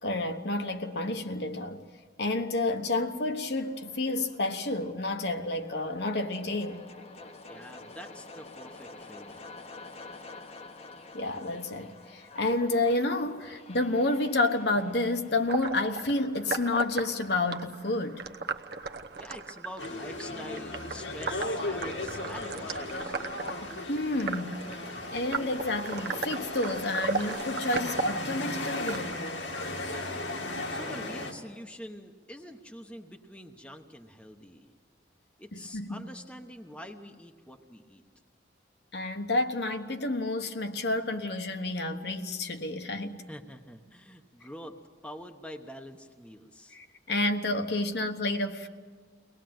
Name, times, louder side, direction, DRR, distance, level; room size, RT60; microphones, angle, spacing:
voice 1, 0.0-1.8 2.2-6.8 11.1-18.2 23.6-29.4 35.5-36.0 38.9-43.2 46.7-48.7, left 2 dB, 60° left, 1.2 m, -30 dB
sound 1, 3.0-19.0, left 3 dB, 35° left, 1.0 m, -50 dB
voice 2, 7.5-9.5 19.2-23.2 30.7-34.7 35.4-38.0 43.3-44.8 45.0-46.8, equal, 5° left, 0.9 m, -45 dB
sound 2, 15.5-29.2, right 4 dB, 60° right, 0.9 m, -37 dB
sound 3, 19.8-31.3, left 2 dB, 85° left, 2.4 m, -36 dB
23.5 x 18.5 x 7.8 m
head